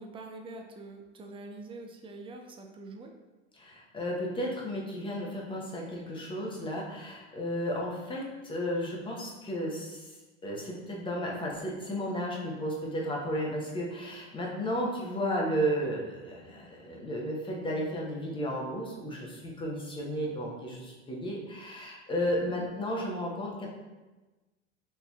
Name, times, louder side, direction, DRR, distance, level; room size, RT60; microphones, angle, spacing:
voice 1, 0.0-3.1 22.4-22.7, right 2 dB, 15° right, 3 dB, 0.3 m, -45 dB
voice 2, 3.6-10.1 10.4-23.7, equal, 15° left, -2 dB, 0.8 m, -33 dB
4.4 x 2.6 x 2.3 m, 1.2 s
hypercardioid pair, 90°, 34 cm